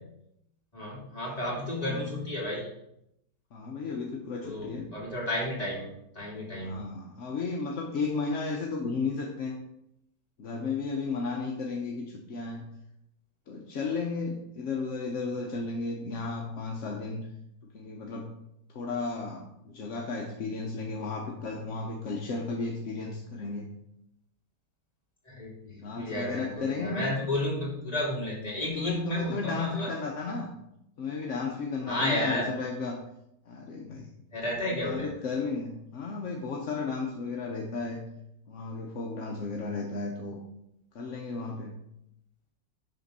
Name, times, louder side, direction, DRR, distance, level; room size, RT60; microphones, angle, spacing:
voice 1, 0.7-2.7 4.4-6.9 25.3-29.9 31.8-32.5 34.3-35.1, left 1 dB, 20° left, -6 dB, 2.8 m, -32 dB
voice 2, 3.5-4.9 6.6-9.6 10.4-12.7 13.5-17.3 17.7-18.3 18.7-23.7 25.8-27.1 28.7-30.5 31.0-33.0 33.5-34.1 34.7-38.1 38.5-40.4 40.9-41.8, left 4 dB, 55° left, 0 dB, 0.9 m, -34 dB
11.0 x 3.7 x 4.2 m, 0.80 s
omnidirectional pair, 2.0 m